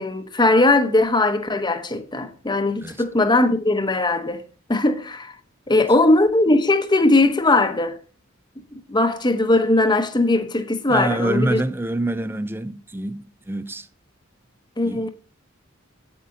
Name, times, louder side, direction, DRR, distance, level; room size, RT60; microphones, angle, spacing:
voice 1, 0.0-4.4 4.7-5.3 5.7-8.0 8.7-11.6 14.8-15.1, left 2 dB, 20° left, 0.9 m, -19 dB
voice 2, 10.9-13.9 14.8-15.1, right 2 dB, 10° right, 0.4 m, -26 dB
8.6 x 8.2 x 3.7 m
head